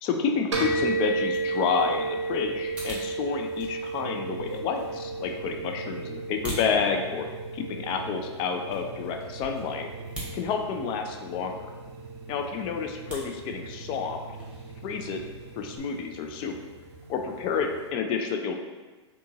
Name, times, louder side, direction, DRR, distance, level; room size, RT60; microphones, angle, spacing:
voice 1, 0.0-9.9 10.3-11.6 12.3-14.2 14.8-15.2 15.6-16.5 17.1-18.5, left 6 dB, 35° left, 4 dB, 0.3 m, -29 dB
sound 1, 0.5-17.9, right 3 dB, 90° right, 0.6 m, -35 dB
sound 2, 0.7-16.0, right 1 dB, 5° right, 0.9 m, -46 dB
sound 3, 4.0-15.8, right 3 dB, 45° right, 0.5 m, -44 dB
2.8 x 2.3 x 2.6 m, 1.3 s
hypercardioid pair, 110°, 15 cm